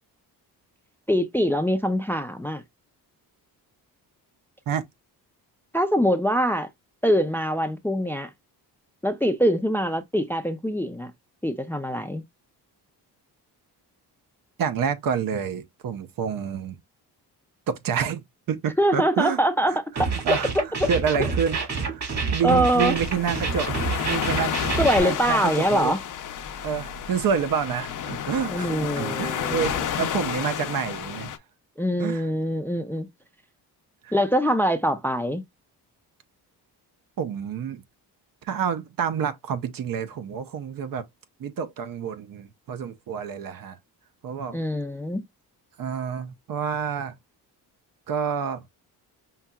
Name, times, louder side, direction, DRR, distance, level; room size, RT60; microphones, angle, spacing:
voice 1, 1.1-2.6 5.7-6.7 7.0-8.3 9.0-11.1 11.4-12.2 18.8-20.4 20.8-20.9 22.4-22.9 24.8-26.0 28.5-29.8 31.8-33.1 34.1-35.4 44.5-45.2, equal, 5° left, 0.4 m, -23 dB
voice 2, 14.6-16.8 17.7-19.4 19.7-20.5 20.9-24.6 25.0-25.9 26.6-31.3 32.0-32.3 34.0-34.1 37.2-37.8 38.4-41.1 41.4-43.8 44.2-44.6 45.8-47.1 48.1-48.6, right 7 dB, 55° right, 0.7 m, -28 dB
sound 1, 20.0-25.0, right 4 dB, 40° right, 1.9 m, -28 dB
sound 2, 22.7-31.4, left 9 dB, 50° left, 0.7 m, -31 dB
5.6 x 2.7 x 2.3 m
cardioid pair, 115°, 40 cm